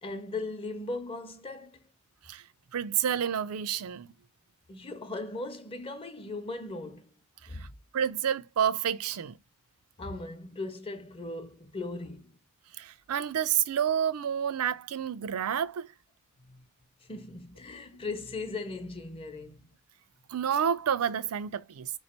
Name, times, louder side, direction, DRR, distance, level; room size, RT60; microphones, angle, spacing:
voice 1, 0.0-1.8 4.7-7.1 7.5-7.6 10.0-12.3 16.5-16.6 17.1-19.6, left 2 dB, 25° left, 0.7 m, -38 dB
voice 2, 2.7-4.1 7.6-7.7 7.9-9.4 12.8-15.9 20.3-21.9, right 8 dB, 85° right, 0.4 m, -29 dB
3.3 x 3.1 x 4.3 m
head